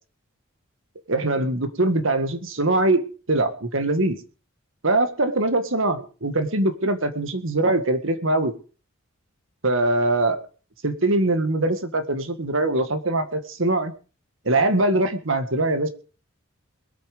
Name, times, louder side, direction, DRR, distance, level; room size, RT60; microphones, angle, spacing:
voice 1, 1.1-4.2 4.8-8.5 9.6-10.4 10.8-13.9 14.5-15.9, right 2 dB, 65° right, 10 dB, 1.9 m, -22 dB
21.5 x 8.5 x 5.2 m, 0.37 s
head